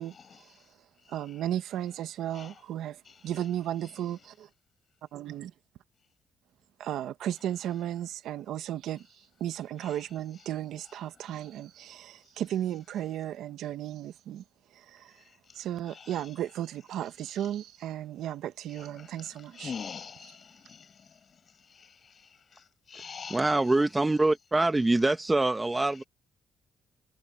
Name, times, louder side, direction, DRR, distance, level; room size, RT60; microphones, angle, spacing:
voice 1, 0.0-1.5 1.8-2.0 2.3-2.6 3.0-4.3 7.4-7.5 9.8-10.5 10.8-11.7 12.2-12.4 15.1-16.5 17.2-17.5 18.7-23.8 25.7-26.1, left 6 dB, 45° left, 6.1 m, -48 dB
voice 2, 1.1-4.5 5.1-5.5 6.8-9.1 9.4-14.4 14.7-15.2 15.5-19.7, right 11 dB, 80° right, 1.4 m, -35 dB
voice 3, 23.3-26.0, right 2 dB, 15° right, 0.9 m, -24 dB
cardioid pair, 90°, 0 cm